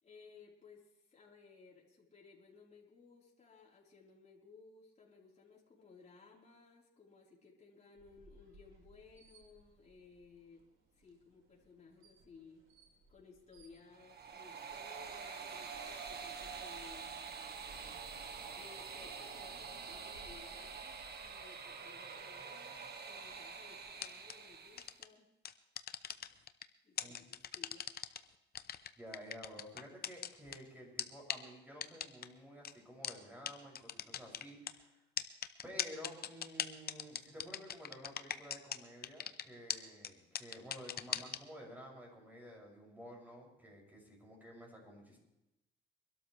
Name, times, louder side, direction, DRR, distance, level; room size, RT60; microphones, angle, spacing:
voice 1, 0.0-10.6 11.0-12.7 13.1-17.3 18.4-25.3 26.8-27.9, left 4 dB, 35° left, -4 dB, 4.4 m, -60 dB
sound 1, 8.0-23.9, right 1 dB, 90° right, 3.6 m, -64 dB
sound 2, 13.9-25.0, right 5 dB, 55° right, 1.7 m, -47 dB
sound 3, 24.0-24.3 24.8-25.0 25.4-26.6 27.0-28.2 28.6-30.6 31.0-31.1 31.3-31.4 31.8-32.3 32.6-32.7 33.0-33.1 33.5-33.6 33.8-34.7 35.2-38.8 39.0-39.4 39.7-39.8 40.0-40.1 40.4-41.4, left 9 dB, 50° left, 0.8 m, -38 dB
voice 2, 27.0-27.3 29.0-35.0 35.6-45.2, equal, 10° right, -2 dB, 7.0 m, -52 dB
24.5 x 12.5 x 3.4 m, 0.93 s
cardioid pair, 90°, 20 cm